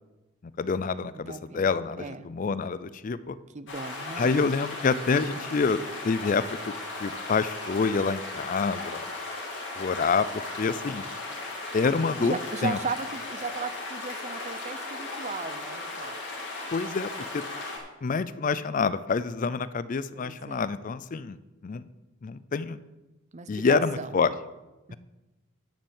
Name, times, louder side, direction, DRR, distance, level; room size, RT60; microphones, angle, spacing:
voice 1, 0.6-3.4 4.2-5.8 6.0-6.4 7.0-9.1 9.8-11.0 11.7-12.8 16.7-17.4 18.0-21.4 21.6-21.9 22.2-22.8 23.5-24.3, left 4 dB, 40° left, 16 dB, 0.4 m, -27 dB
voice 2, 1.3-1.7 2.0-2.3 3.5-4.3 12.2-16.2 20.1-20.6 23.3-24.1 24.9-25.0, right 4 dB, 35° right, 13 dB, 0.5 m, -36 dB
sound 1, 3.7-17.8, left 2 dB, 55° left, 2.5 m, -37 dB
10.5 x 5.5 x 7.2 m, 1.1 s
head